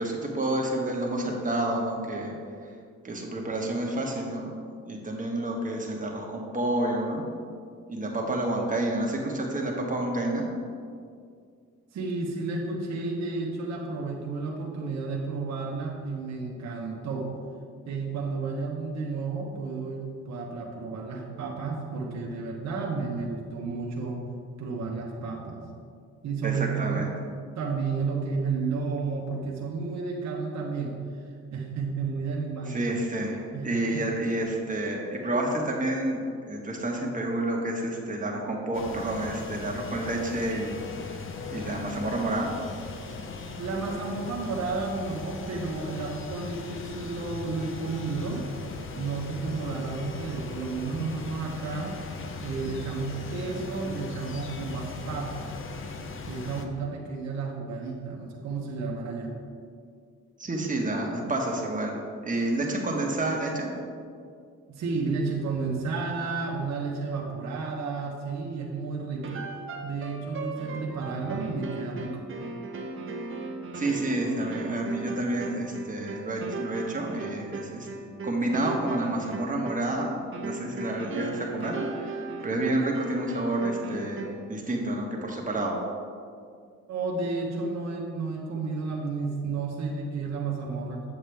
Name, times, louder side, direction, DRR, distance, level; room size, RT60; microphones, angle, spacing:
voice 1, 0.0-2.3 3.0-4.5 4.9-7.2 7.9-10.5 26.4-27.1 32.7-40.8 41.5-42.5 60.4-61.9 62.2-63.7 73.7-77.9 78.2-85.8, right 1 dB, 25° right, -1 dB, 1.5 m, -29 dB
voice 2, 11.9-17.3 17.8-24.2 24.6-25.6 26.2-27.0 27.5-31.2 31.5-32.9 33.2-34.1 43.6-48.4 49.0-51.9 52.4-55.5 56.2-59.3 64.7-69.4 69.8-72.2 86.9-91.0, right 4 dB, 65° right, -2 dB, 1.1 m, -32 dB
sound 1, 38.7-56.7, left 4 dB, 45° left, 0.8 m, -39 dB
sound 2, 69.2-84.5, right 3 dB, 45° right, 0.9 m, -37 dB
7.8 x 7.2 x 3.4 m, 2.2 s
cardioid pair, 90°, 30 cm